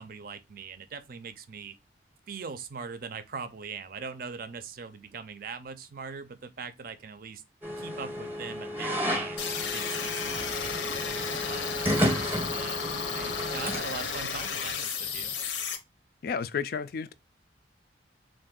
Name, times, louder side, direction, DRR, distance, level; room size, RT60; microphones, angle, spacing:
voice 1, 0.0-1.8 2.3-7.4 7.8-12.8 13.1-15.4, right 5 dB, 50° right, 0.5 m, -41 dB
sound 1, 7.6-13.8, equal, 10° right, 0.7 m, -32 dB
sound 2, 9.4-15.8, left 6 dB, 75° left, 0.7 m, -33 dB
voice 2, 16.2-17.1, left 6 dB, 55° left, 0.3 m, -32 dB
3.6 x 2.6 x 3.7 m
head